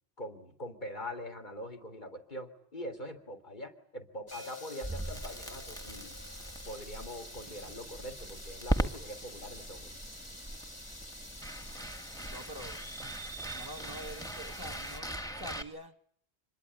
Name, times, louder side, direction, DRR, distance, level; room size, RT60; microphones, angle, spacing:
voice 1, 0.2-6.2 6.7-10.0, equal, 45° left, 3.4 m, -43 dB
sound 1, 4.3-10.1, left 4 dB, 85° left, 2.8 m, -54 dB
sound 2, 4.3-15.0, left 1 dB, 30° left, 2.9 m, -48 dB
Crackle, 4.8-15.6, right 1 dB, 5° left, 1.8 m, -39 dB
voice 2, 12.3-12.8 13.5-15.9, equal, 20° right, 1.5 m, -46 dB
26.0 x 22.0 x 9.9 m
omnidirectional pair, 1.1 m